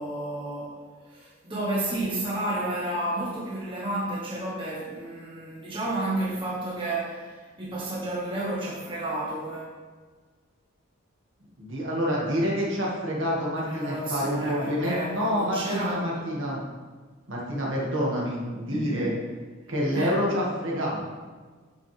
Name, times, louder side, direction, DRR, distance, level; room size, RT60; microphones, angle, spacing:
voice 1, 0.0-9.7 13.6-16.1 18.7-19.2 19.9-20.2, right 1 dB, 25° right, -7 dB, 1.8 m, -31 dB
voice 2, 11.6-16.6 17.3-19.1 19.7-21.1, equal, 60° right, -4 dB, 2.1 m, -27 dB
9.1 x 6.5 x 3.5 m, 1.4 s
head